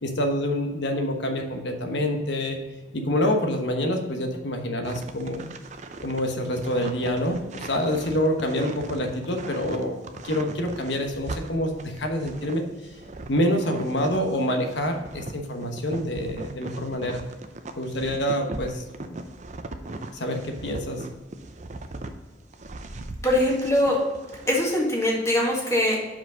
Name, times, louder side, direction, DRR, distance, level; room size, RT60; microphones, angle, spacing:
voice 1, 0.0-2.6 2.9-5.5 6.0-12.6 13.3-17.2 17.8-19.2 20.1-21.1, equal, 75° left, 4 dB, 1.1 m, -27 dB
sound 1, 4.8-14.4 14.7-22.1 22.5-24.8, right 2 dB, 40° right, 0.6 m, -39 dB
voice 2, 23.2-24.0 24.5-26.0, left 1 dB, 15° left, -2 dB, 1.7 m, -22 dB
6.0 x 5.0 x 5.0 m, 1.2 s
head